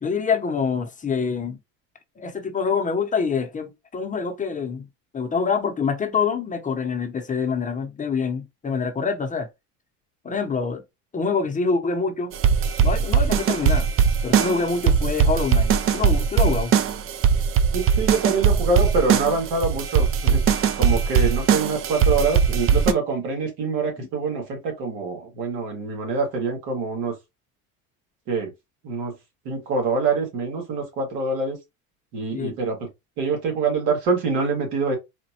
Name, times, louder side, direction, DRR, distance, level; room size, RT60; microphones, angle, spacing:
voice 1, 0.0-1.6 2.2-4.9 5.1-9.5 10.2-10.8 11.1-12.3 12.8-13.9 14.2-16.7 32.3-32.6, left 5 dB, 20° left, 0.8 m, -25 dB
sound 1, 12.3-22.9, right 7 dB, 35° right, 0.4 m, -20 dB
voice 2, 17.7-20.4 20.8-27.1 28.3-28.5 28.8-29.1 29.5-31.6 32.1-32.9 33.2-35.0, right 4 dB, 70° right, 1.9 m, -25 dB
4.2 x 2.2 x 2.8 m
supercardioid pair, 95°, 40 cm